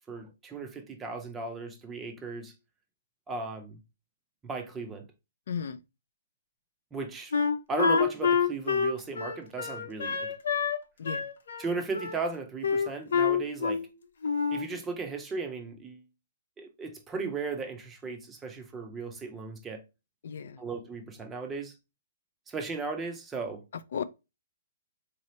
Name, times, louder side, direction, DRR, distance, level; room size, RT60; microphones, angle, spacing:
voice 1, 0.1-2.5 3.3-3.8 4.4-5.1 6.9-7.3 7.7-10.3 11.6-13.9 14.5-16.0 16.6-19.8 20.6-21.7 22.5-23.6, right 4 dB, 10° right, 0.5 m, -36 dB
voice 2, 5.5-5.8 11.0-11.2 20.2-20.6 23.9-24.0, left 7 dB, 55° left, 0.4 m, -34 dB
Wind instrument woodwind instrument, 7.3-10.8 11.0-12.2 12.6-13.9 14.2-14.7, left 6 dB, 75° left, 0.8 m, -27 dB
4.1 x 2.8 x 3.0 m
hypercardioid pair, 175°, 0 cm